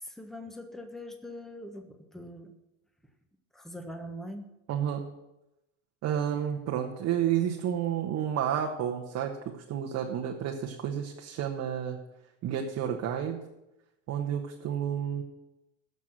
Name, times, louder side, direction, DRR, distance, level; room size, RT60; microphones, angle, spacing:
voice 1, 0.0-2.5 3.5-4.5, equal, ahead, 5 dB, 1.3 m, -42 dB
voice 2, 4.7-5.0 6.0-9.4 9.7-12.0 12.4-13.4 14.1-15.2, right 9 dB, 45° right, 1 dB, 1.3 m, -30 dB
15.0 x 6.1 x 6.0 m, 0.92 s
hypercardioid pair, 100°, 39 cm